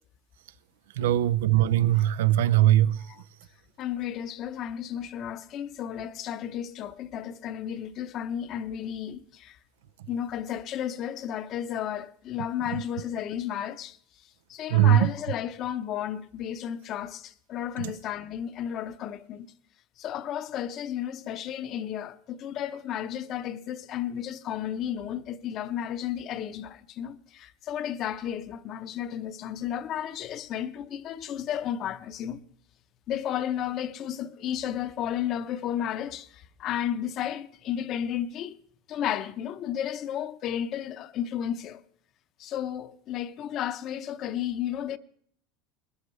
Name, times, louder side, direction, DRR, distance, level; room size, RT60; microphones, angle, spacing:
voice 1, 1.0-3.0 14.7-15.1, right 12 dB, 90° right, 0.5 m, -20 dB
voice 2, 3.8-9.6 10.1-14.0 14.5-19.5 20.0-32.4 33.1-38.5 38.9-41.8 42.4-45.0, left 10 dB, 40° left, 0.7 m, -33 dB
21.0 x 13.0 x 3.2 m
supercardioid pair, 135°, 0 cm